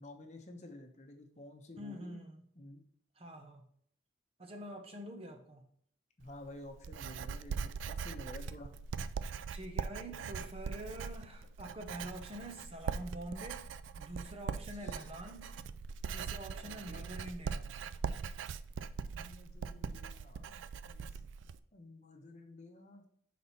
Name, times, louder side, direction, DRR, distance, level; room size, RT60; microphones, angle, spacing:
voice 1, 0.0-2.2 2.6-2.8 6.2-8.7 14.8-15.1 16.6-17.1 19.1-20.5 20.9-21.2 21.7-23.1, left 2 dB, 40° left, 0.9 m, -51 dB
voice 2, 1.8-2.4 3.2-3.6 4.4-5.7 9.5-13.7 14.0-15.5 16.1-17.7, right 1 dB, 30° right, 0.8 m, -46 dB
Writing, 6.2-21.6, right 6 dB, 85° right, 0.3 m, -41 dB
6.1 x 4.2 x 4.1 m
head